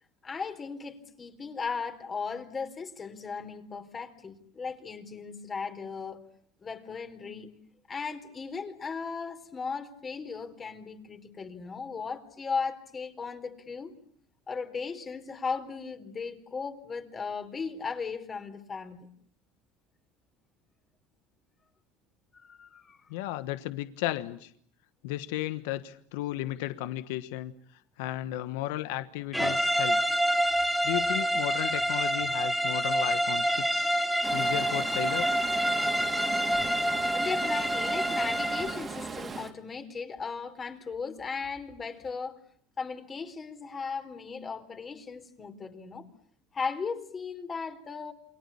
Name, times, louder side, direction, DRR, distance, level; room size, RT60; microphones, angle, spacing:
voice 1, 0.2-6.2 6.6-7.5 7.9-13.9 14.5-19.1 22.3-23.0 37.1-42.4 42.8-46.1 46.5-48.1, left 5 dB, 30° left, 4.2 m, -37 dB
voice 2, 23.1-24.5 25.0-27.5 28.0-30.0 30.8-33.9 34.3-35.4, left 15 dB, 80° left, 1.3 m, -34 dB
sound 1, 29.3-38.8, equal, ahead, 2.5 m, -27 dB
Stream, 34.2-39.5, right 5 dB, 30° right, 3.5 m, -38 dB
28.5 x 22.5 x 8.6 m
supercardioid pair, 95°, 0 cm